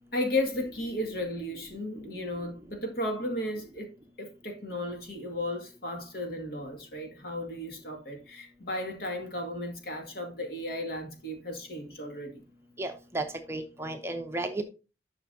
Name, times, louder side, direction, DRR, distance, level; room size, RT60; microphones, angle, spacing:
voice 1, 0.1-3.9 4.2-12.4, left 1 dB, 55° left, 2.1 m, -34 dB
voice 2, 12.8-14.6, right 2 dB, 15° right, 0.7 m, -34 dB
11.0 x 5.9 x 2.7 m
head